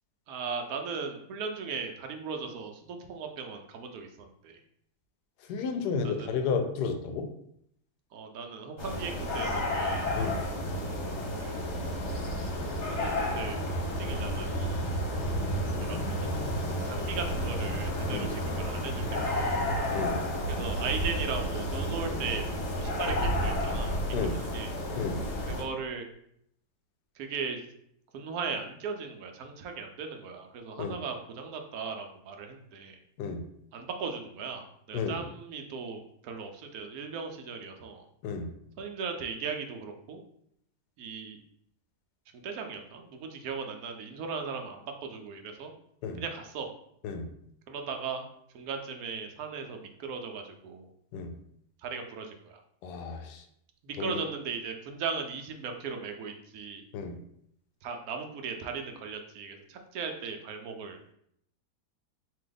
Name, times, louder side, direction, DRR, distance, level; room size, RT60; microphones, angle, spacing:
voice 1, 0.3-4.6 6.0-6.3 8.1-10.1 11.4-11.6 12.9-13.6 14.0-14.8 15.9-16.3 16.8-19.7 20.5-22.4 22.8-24.7 25.5-26.1 27.2-27.6 28.1-33.0 33.7-38.1 38.8-40.2 41.0-41.4 42.3-45.7 46.2-46.7 47.7-48.2 48.5-50.9 51.8-52.6 53.8-56.8 57.8-61.0, right 5 dB, 70° right, 4 dB, 1.0 m, -38 dB
voice 2, 5.5-7.3 10.2-10.4 18.1-18.3 19.9-20.2 24.1-24.4 25.0-25.2 30.8-31.0 33.2-33.4 34.9-35.2 38.2-38.5 46.0-46.2 47.0-47.3 51.1-51.3 52.8-53.4 54.0-54.2 56.9-57.2, left 5 dB, 90° left, 7 dB, 1.2 m, -32 dB
sound 1, 8.8-25.6, equal, 50° left, 1.1 m, -31 dB
4.2 x 2.7 x 3.8 m, 0.72 s
omnidirectional pair, 1.7 m